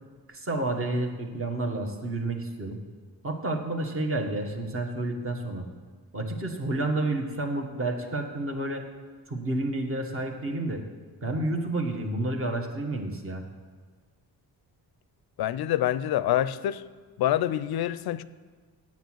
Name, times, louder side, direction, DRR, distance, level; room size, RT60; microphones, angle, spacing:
voice 1, 0.3-2.8 3.2-5.7 6.1-8.9 9.3-10.8 11.2-13.4, right 2 dB, 35° right, 1.4 m, -30 dB
voice 2, 15.4-16.8 17.2-18.2, left 12 dB, 75° left, 0.5 m, -26 dB
9.2 x 7.4 x 7.8 m
cardioid pair, 120°, 38 cm